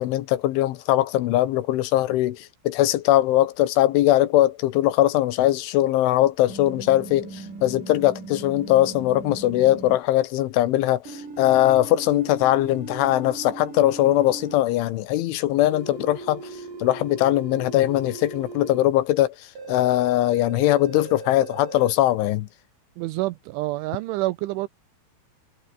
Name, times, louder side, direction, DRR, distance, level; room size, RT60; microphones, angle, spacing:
voice 1, 0.0-16.4 16.8-22.5, left 14 dB, 80° left, 3.5 m, -21 dB
sound 1, 6.5-10.0 11.1-14.6 15.7-18.8 19.6-21.9, right 4 dB, 40° right, 8.7 m, -38 dB
voice 2, 23.0-24.7, right 19 dB, 80° right, 3.1 m, -27 dB
omnidirectional pair, 5.7 m